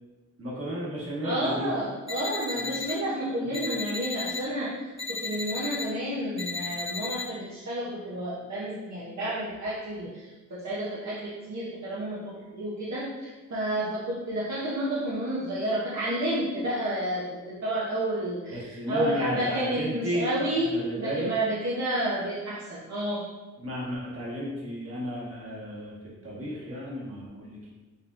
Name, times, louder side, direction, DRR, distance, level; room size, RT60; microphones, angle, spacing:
voice 1, 0.4-1.7 2.6-2.7 3.4-3.6 18.5-20.3 20.6-21.3 23.6-26.0 26.2-27.7, equal, 50° right, -6 dB, 1.5 m, -33 dB
voice 2, 1.2-4.7 5.1-23.3, right 1 dB, 70° right, -8 dB, 0.9 m, -30 dB
sound 1, 2.1-2.9 3.5-4.4 5.0-5.8 6.4-7.2, left 3 dB, 20° left, 0.6 m, -34 dB
5.3 x 3.5 x 2.5 m, 1.2 s
wide cardioid pair, 125°, 29 cm